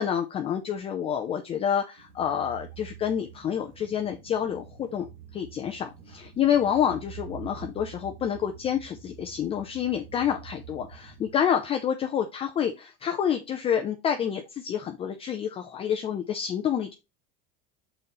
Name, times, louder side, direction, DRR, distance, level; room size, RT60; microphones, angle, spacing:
voice 1, 0.0-5.1 5.3-16.9, left 8 dB, 20° left, 5 dB, 0.5 m, -28 dB
sound 1, 2.0-11.4, right 7 dB, 85° right, 2.0 m, -47 dB
5.6 x 4.0 x 4.2 m, 0.26 s
supercardioid pair, 150°, 30 cm